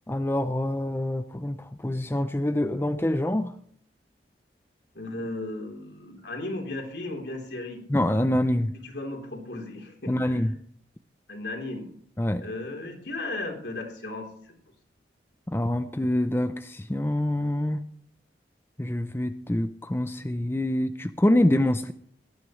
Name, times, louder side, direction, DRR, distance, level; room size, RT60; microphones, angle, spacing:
voice 1, 0.1-3.5 7.9-8.7 10.1-10.5 12.2-12.5 15.5-17.8 18.8-21.9, left 1 dB, 15° left, 10 dB, 0.5 m, -25 dB
voice 2, 4.9-7.8 8.7-10.4 11.3-11.9 12.4-14.5, left 2 dB, 70° left, 2 dB, 3.7 m, -35 dB
18.5 x 13.0 x 3.2 m, 0.62 s
head